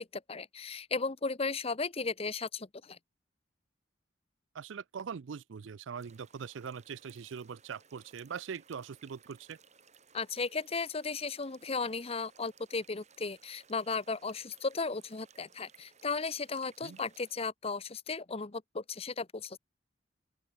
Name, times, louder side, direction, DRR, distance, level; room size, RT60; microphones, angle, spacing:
voice 1, 0.0-3.0 10.1-19.6, left 4 dB, 30° left, 0.9 m, -35 dB
voice 2, 4.5-9.6 16.8-17.0, right 6 dB, 85° right, 0.5 m, -42 dB
sound 1, 6.0-17.4, right 6 dB, 40° right, 7.1 m, -62 dB
open air
head